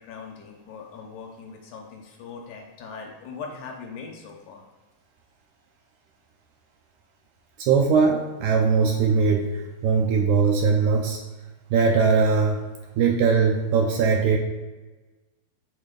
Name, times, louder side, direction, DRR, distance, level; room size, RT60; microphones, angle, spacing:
voice 1, 0.0-4.6, left 5 dB, 75° left, 1 dB, 2.1 m, -40 dB
voice 2, 7.6-11.2 11.7-12.6 13.0-14.4, right 5 dB, 80° right, 1 dB, 1.8 m, -20 dB
6.3 x 3.6 x 5.1 m, 1.2 s
omnidirectional pair, 3.9 m